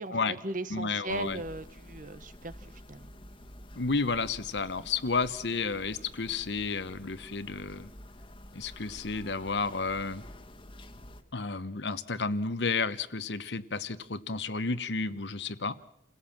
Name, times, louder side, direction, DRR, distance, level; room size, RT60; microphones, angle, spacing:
voice 1, 0.0-3.1 4.8-4.9, right 2 dB, 50° right, 12 dB, 1.3 m, -38 dB
voice 2, 0.7-1.4 3.7-7.9 8.5-10.2 11.3-15.8, left 4 dB, 75° left, 13 dB, 1.1 m, -32 dB
sound 1, 1.1-11.2, left 1 dB, 30° left, 1.5 m, -49 dB
29.0 x 17.0 x 7.4 m, 0.78 s
head